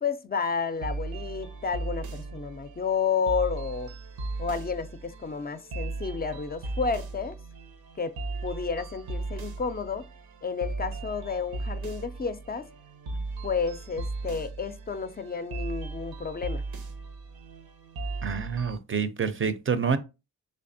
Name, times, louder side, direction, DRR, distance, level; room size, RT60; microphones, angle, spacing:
voice 1, 0.0-3.9 4.4-7.4 8.0-8.2 8.4-10.1 10.4-12.7 13.4-16.6, left 5 dB, 25° left, 0.4 m, -31 dB
sound 1, 0.7-18.8, right 3 dB, 80° right, 0.7 m, -37 dB
voice 2, 18.2-20.0, right 6 dB, 35° right, 0.5 m, -27 dB
3.4 x 3.3 x 2.6 m
cardioid pair, 45°, 36 cm